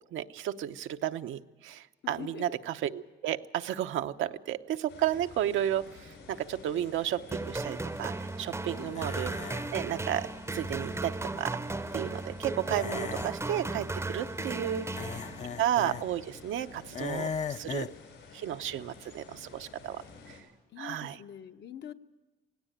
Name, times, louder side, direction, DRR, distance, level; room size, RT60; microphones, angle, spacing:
voice 1, 0.1-10.3 10.5-11.6 11.9-15.2 15.6-17.9 18.3-20.4 20.8-21.2, right 11 dB, 80° right, 9 dB, 0.8 m, -33 dB
voice 2, 2.0-2.4 8.7-9.0 14.4-15.0 20.7-21.9, left 9 dB, 60° left, 7 dB, 1.1 m, -45 dB
sound 1, 4.9-20.4, left 4 dB, 85° left, 7.3 m, -51 dB
sound 2, 7.3-15.7, right 2 dB, 15° right, 0.7 m, -36 dB
sound 3, 8.9-9.8 12.7-13.3 15.0-16.0 16.9-18.0, left 6 dB, 35° left, 0.6 m, -37 dB
17.5 x 17.0 x 9.2 m, 1.2 s
cardioid pair, 90°, 20 cm